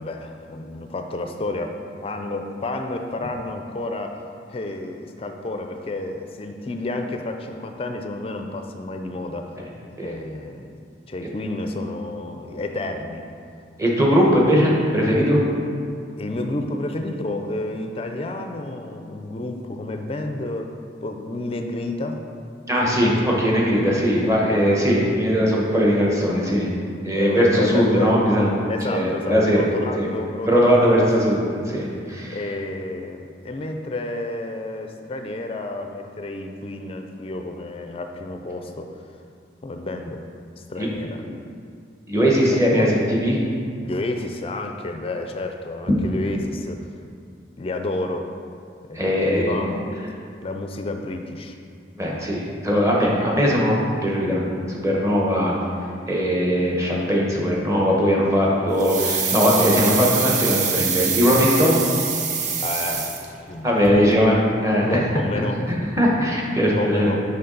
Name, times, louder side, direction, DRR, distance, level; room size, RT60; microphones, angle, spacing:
voice 1, 0.0-4.2 4.5-9.5 10.0-10.7 11.1-13.3 16.2-20.7 21.0-22.2 23.1-23.3 24.6-24.8 27.1-28.2 28.7-31.0 32.3-38.9 39.6-40.3 40.7-41.4 42.4-42.9 43.8-46.9 47.6-48.3 48.9-49.9 50.4-51.6 55.5-55.6 62.6-63.2 63.5-64.2 64.8-65.6 66.8-67.2, left 2 dB, 30° left, 5 dB, 0.4 m, -30 dB
voice 2, 13.8-15.4 22.7-26.7 27.0-28.5 28.9-29.6 30.0-30.1 30.4-32.4 40.8-40.9 42.1-42.9 43.1-43.4 48.9-49.6 52.0-54.4 54.7-55.6 56.1-61.8 63.6-64.4 64.6-65.0 65.7-67.1, equal, 15° right, -3 dB, 1.0 m, -19 dB
sound 1, 58.8-63.6 63.9-64.0, right 6 dB, 40° right, 0.5 m, -25 dB
6.8 x 5.4 x 3.9 m, 2.3 s
head